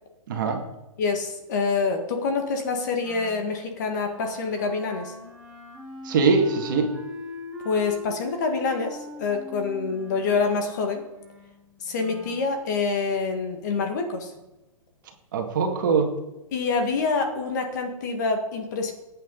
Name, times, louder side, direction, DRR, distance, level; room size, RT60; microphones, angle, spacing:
voice 1, 0.3-0.6 6.0-6.9 15.3-16.1, right 4 dB, 35° right, 3 dB, 2.0 m, -22 dB
voice 2, 1.0-5.1 7.6-11.1 11.8-14.3 16.5-18.9, left 4 dB, 30° left, 4 dB, 1.7 m, -26 dB
Wind instrument woodwind instrument, 3.0-12.5, left 1 dB, 5° right, 3.1 m, -41 dB
20.5 x 9.1 x 3.9 m, 1.0 s
hypercardioid pair, 180°, 18 cm